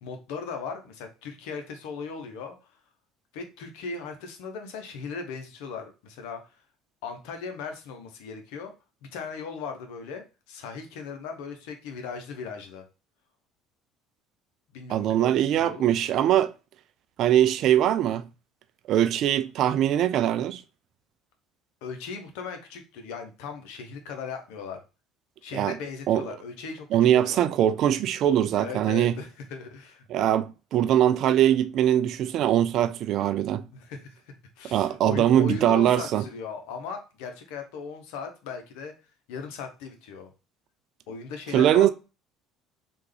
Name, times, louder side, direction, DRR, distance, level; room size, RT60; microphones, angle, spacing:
voice 1, 0.0-2.5 3.3-6.4 7.0-8.7 9.0-12.8 14.7-15.9 21.8-24.8 25.4-26.9 27.1-27.4 28.6-30.1 33.7-38.9 39.3-40.3 41.1-41.9, left 5 dB, 75° left, 0.8 m, -38 dB
voice 2, 14.9-16.5 17.2-18.2 18.9-20.6 25.5-25.8 26.1-26.2 26.9-29.1 30.1-33.6 34.7-36.2 41.5-41.9, right 11 dB, 60° right, 0.4 m, -22 dB
3.5 x 2.5 x 3.2 m
hypercardioid pair, 75°, 0 cm